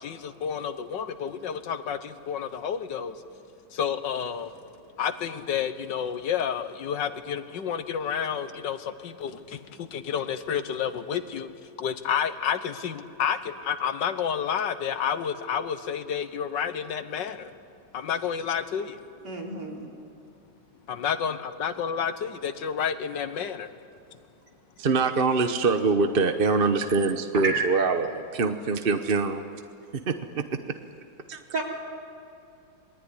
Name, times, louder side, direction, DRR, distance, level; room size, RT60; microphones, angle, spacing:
voice 1, 0.0-3.2 3.7-4.5 5.0-17.5 17.9-19.0 19.9-20.0 20.9-23.7, left 8 dB, 75° left, 11 dB, 1.7 m, -30 dB
voice 2, 19.2-19.9 27.4-27.7 31.5-31.6, right 3 dB, 60° right, -1 dB, 4.4 m, -29 dB
voice 3, 24.8-29.6 29.9-30.6 31.3-31.4, right 4 dB, 40° right, 7 dB, 0.9 m, -24 dB
27.0 x 21.0 x 9.9 m, 2.7 s
omnidirectional pair, 2.0 m